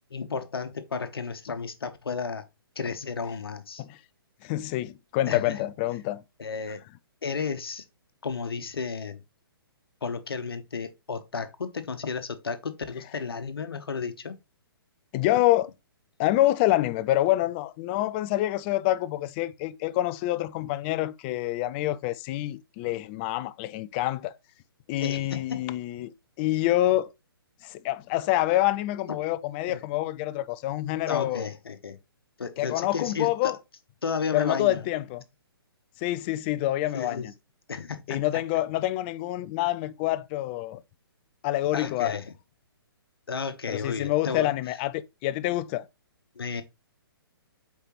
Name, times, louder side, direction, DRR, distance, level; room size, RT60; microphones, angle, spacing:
voice 1, 0.1-2.5 2.8-3.8 5.3-5.6 6.4-6.8 7.2-7.8 8.2-9.2 10.0-14.4 25.0-25.7 29.7-29.8 31.1-32.0 32.4-33.5 34.0-34.8 36.9-37.3 37.7-38.4 41.7-42.3 43.3-44.5 46.3-46.6, left 5 dB, 70° left, 1.1 m, -33 dB
voice 2, 4.4-6.2 15.1-15.7 16.2-24.3 24.9-27.1 27.6-31.4 32.6-33.6 34.3-35.2 36.0-37.3 38.1-40.8 41.4-42.1 43.7-45.8, left 15 dB, 25° left, 0.4 m, -27 dB
8.1 x 4.7 x 3.1 m
figure-of-eight pair, 130°, 13 cm